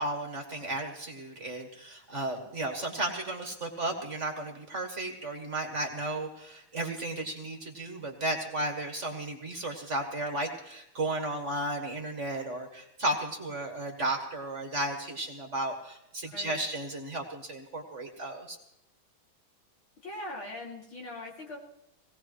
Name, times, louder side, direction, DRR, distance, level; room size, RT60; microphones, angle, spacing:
voice 1, 0.0-18.6, right 2 dB, 35° right, 3 dB, 1.8 m, -34 dB
voice 2, 16.2-16.6 20.0-21.6, left 1 dB, 70° left, -2 dB, 3.4 m, -41 dB
19.0 x 17.5 x 3.1 m, 0.82 s
omnidirectional pair, 2.3 m